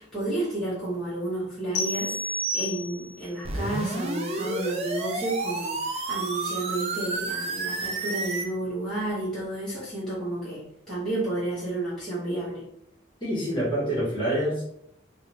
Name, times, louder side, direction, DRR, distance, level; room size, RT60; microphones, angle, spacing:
voice 1, 0.0-12.7, right 2 dB, 5° left, -11 dB, 1.2 m, -31 dB
sound 1, 1.7-3.3, equal, 70° left, 0.7 m, -30 dB
sound 2, 3.4-8.5, right 3 dB, 35° right, 0.4 m, -30 dB
voice 2, 13.2-14.6, right 1 dB, 25° left, -7 dB, 1.3 m, -26 dB
3.5 x 2.3 x 3.0 m, 0.70 s
head